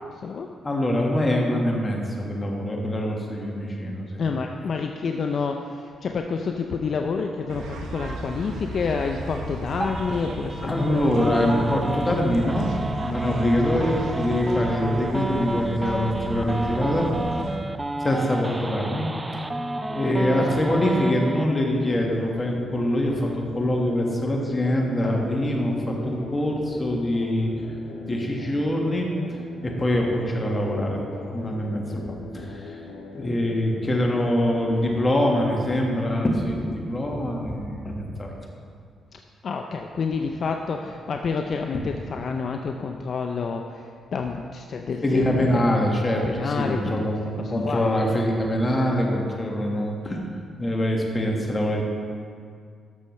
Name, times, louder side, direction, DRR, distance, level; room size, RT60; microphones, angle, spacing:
voice 1, 0.6-4.2 10.6-12.7 13.0-17.1 18.0-19.1 19.3-19.4 19.9-27.5 28.0-29.1 29.6-31.0 31.3-32.8 33.1-38.3 45.0-50.2 50.6-51.8, left 1 dB, 25° left, 0 dB, 1.5 m, -24 dB
voice 2, 4.2-10.8 39.4-43.8 44.1-45.6 46.2-46.9 47.4-47.8, left 5 dB, 55° left, 3 dB, 0.4 m, -28 dB
sound 1, 7.5-17.6, right 2 dB, 85° right, 0.8 m, -35 dB
sound 2, 9.8-21.4, right 2 dB, 15° right, 0.4 m, -31 dB
sound 3, 19.9-35.9, left 3 dB, 80° left, 1.2 m, -40 dB
12.5 x 6.6 x 3.2 m, 2.2 s
cardioid pair, 85°, 0 cm